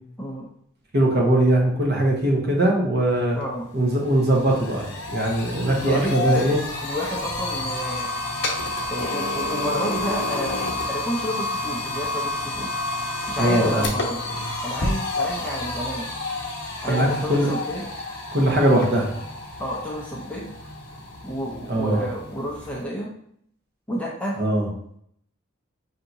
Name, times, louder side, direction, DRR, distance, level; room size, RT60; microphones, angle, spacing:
voice 1, 0.9-3.4 3.7-6.6 13.4-13.9 16.9-17.5 18.3-19.1 21.7-22.0 24.4-24.7, right 1 dB, 45° right, -1 dB, 1.0 m, -21 dB
voice 2, 3.3-3.7 5.8-6.5 6.8-8.1 8.9-10.6 10.9-12.7 13.3-14.2 14.6-16.1 16.8-17.9 19.6-20.5 21.2-23.1 23.9-24.4, equal, 5° left, -3 dB, 0.5 m, -30 dB
sound 1, 3.4-3.5 3.8-22.8, left 2 dB, 50° left, 0.9 m, -30 dB
5.7 x 2.7 x 2.6 m, 0.67 s
head